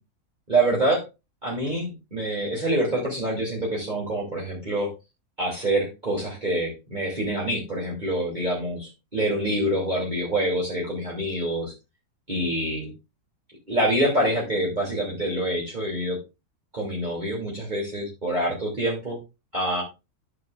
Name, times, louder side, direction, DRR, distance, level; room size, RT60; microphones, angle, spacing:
voice 1, 0.5-1.0 1.4-4.9 5.4-11.7 12.3-12.9 13.7-16.2 16.7-19.2 19.5-19.8, right 1 dB, 30° right, -5 dB, 2.9 m, -26 dB
13.5 x 6.1 x 2.4 m, 0.26 s
omnidirectional pair, 1.7 m